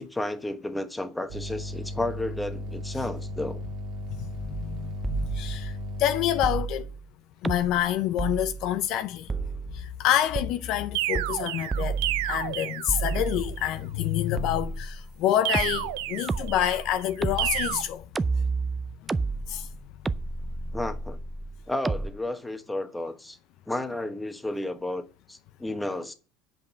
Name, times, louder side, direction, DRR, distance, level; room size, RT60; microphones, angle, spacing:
voice 1, 0.0-3.6 20.7-21.2 21.7-23.4 23.7-25.0 25.3-26.1, left 1 dB, 10° left, 1.2 m, -32 dB
sound 1, 1.3-6.6, left 1 dB, 55° right, 1.8 m, -35 dB
voice 2, 4.1-5.7 6.0-6.9 7.4-9.3 9.7-18.0 19.5-19.7, left 11 dB, 60° left, 0.6 m, -27 dB
sound 2, 4.5-4.8 5.0-5.9 6.4-7.1 7.4-7.9 8.2-8.8 9.3-9.9 10.3-10.5 11.2-11.5 11.7-12.5 12.9-13.7 14.4-15.1 15.5-22.1, right 4 dB, 15° right, 0.4 m, -31 dB
sound 3, 10.9-13.4 15.4-16.8 17.4-17.8, right 15 dB, 80° right, 0.6 m, -31 dB
8.0 x 5.3 x 7.1 m
supercardioid pair, 115°, 0 cm